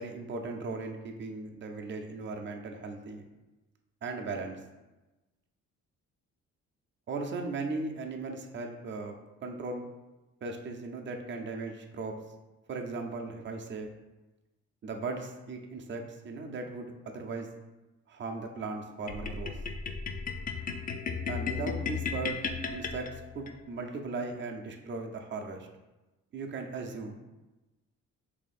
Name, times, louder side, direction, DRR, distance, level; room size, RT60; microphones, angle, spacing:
voice 1, 0.0-3.2 4.0-4.6 7.1-9.8 10.4-12.1 12.7-13.9 14.8-17.5 18.1-19.6 21.3-22.4 22.7-23.1 23.3-25.7 26.3-27.2, right 3 dB, 40° right, 3 dB, 0.6 m, -37 dB
sound 1, 19.1-23.5, left 5 dB, 30° left, 0.4 m, -35 dB
3.0 x 2.8 x 4.1 m, 1.1 s
cardioid pair, 90°, 30 cm